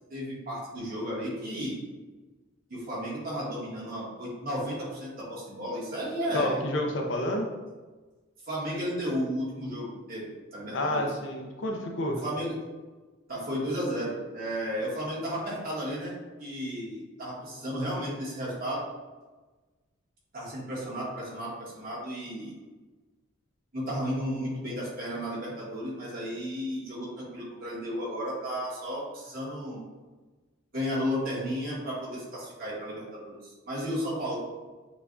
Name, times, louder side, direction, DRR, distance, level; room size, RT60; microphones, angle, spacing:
voice 1, 0.1-1.8 2.7-6.6 8.4-11.1 12.2-12.6 13.3-18.8 20.3-22.6 23.7-29.8 30.7-34.4, equal, 45° right, -5 dB, 1.5 m, -33 dB
voice 2, 6.3-7.5 10.7-12.2, left 1 dB, 65° left, 1 dB, 0.6 m, -29 dB
6.7 x 2.4 x 2.6 m, 1.3 s
head